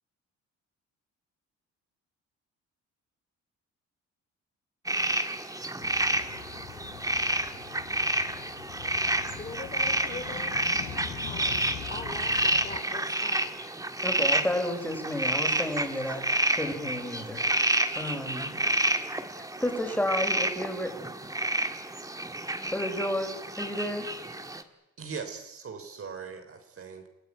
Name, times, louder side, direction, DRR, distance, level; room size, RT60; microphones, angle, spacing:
sound 1, 4.9-24.6, right 1 dB, 10° right, 1.9 m, -29 dB
sound 2, 5.8-12.8, left 9 dB, 80° left, 3.0 m, -43 dB
voice 1, 9.4-10.5 11.2-13.6, left 3 dB, 25° left, 6 dB, 3.3 m, -42 dB
voice 2, 14.0-17.4 17.9-18.5 19.6-20.9 22.7-24.1, left 1 dB, 5° left, 4 dB, 5.8 m, -31 dB
voice 3, 25.0-27.1, right 5 dB, 45° right, 6 dB, 3.4 m, -40 dB
30.0 x 15.0 x 9.2 m, 0.98 s
cardioid pair, 90°, 30 cm